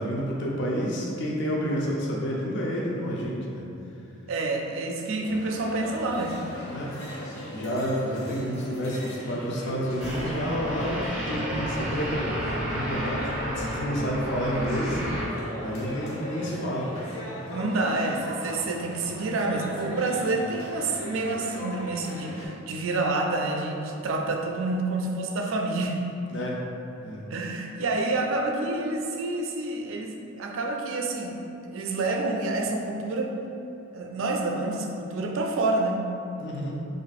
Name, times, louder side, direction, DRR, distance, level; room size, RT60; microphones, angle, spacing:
voice 1, 0.0-3.6 6.7-7.0 7.5-11.0 11.3-13.3 13.5-15.0 15.6-16.9 26.3-26.6 27.0-27.3 36.4-36.9, equal, 55° left, -3 dB, 0.5 m, -29 dB
voice 2, 4.3-6.4 17.4-26.0 27.3-31.4 31.6-33.4 33.9-36.0, right 2 dB, 65° right, 2 dB, 0.4 m, -28 dB
sound 1, 5.2-22.5, left 1 dB, 80° left, 0.9 m, -38 dB
sound 2, 10.0-15.3, equal, 5° right, 0.5 m, -32 dB
2.7 x 2.6 x 4.0 m, 2.8 s
head